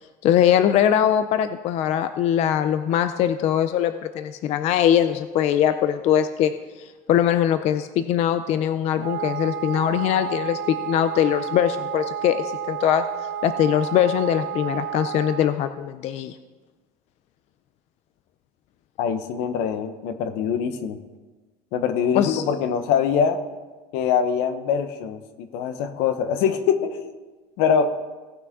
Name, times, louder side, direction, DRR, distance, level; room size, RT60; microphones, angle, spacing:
voice 1, 0.2-6.5 6.8-13.0 13.4-16.4 22.1-22.4, left 10 dB, 40° left, 10 dB, 0.4 m, -21 dB
Wind instrument woodwind instrument, 8.9-15.6, right 9 dB, 25° right, 1.9 m, -31 dB
voice 2, 19.0-21.0 21.7-23.4 23.9-27.1 27.6-27.9, left 7 dB, 75° left, 10 dB, 1.0 m, -23 dB
17.5 x 6.1 x 3.6 m, 1.3 s
cardioid pair, 165°, 17 cm